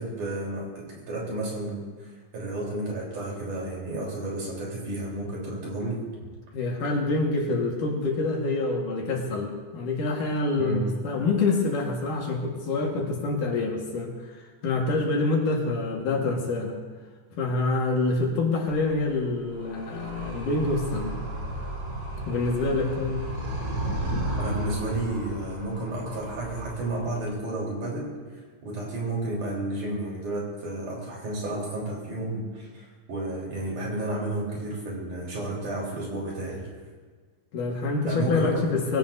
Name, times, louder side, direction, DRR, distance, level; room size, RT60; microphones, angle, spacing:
voice 1, 0.0-6.0 10.6-10.8 24.4-28.1 28.6-36.6 38.1-38.6, right 1 dB, 55° right, -3 dB, 5.2 m, -32 dB
voice 2, 6.5-16.8 17.4-21.2 22.3-23.2 37.5-39.0, left 3 dB, 65° left, 0 dB, 3.1 m, -26 dB
Animal, 18.7-27.3, right 1 dB, 30° right, 3.9 m, -34 dB
22.0 x 16.0 x 2.7 m, 1.5 s
omnidirectional pair, 4.1 m